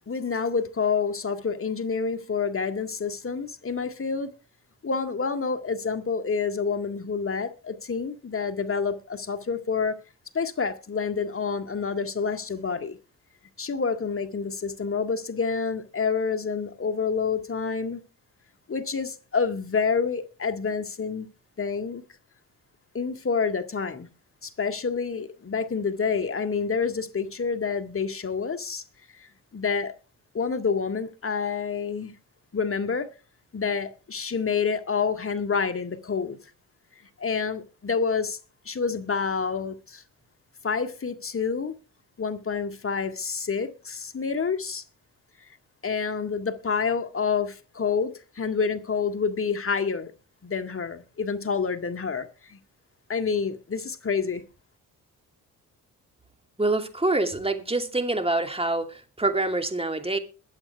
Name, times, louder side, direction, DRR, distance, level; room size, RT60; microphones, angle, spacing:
voice 1, 0.1-4.3 4.8-10.0 10.3-13.0 13.6-18.0 18.7-21.3 21.6-22.0 22.9-24.1 24.4-28.8 29.2-29.9 30.3-32.1 32.5-33.1 33.5-36.4 37.2-38.4 38.7-40.0 40.6-41.7 42.2-44.8 45.8-50.1 50.4-52.6 53.1-54.4, left 5 dB, 30° left, 1.9 m, -28 dB
voice 2, 56.6-60.2, right 2 dB, 15° right, 2.6 m, -26 dB
21.5 x 8.1 x 3.4 m
hypercardioid pair, 45°, 43 cm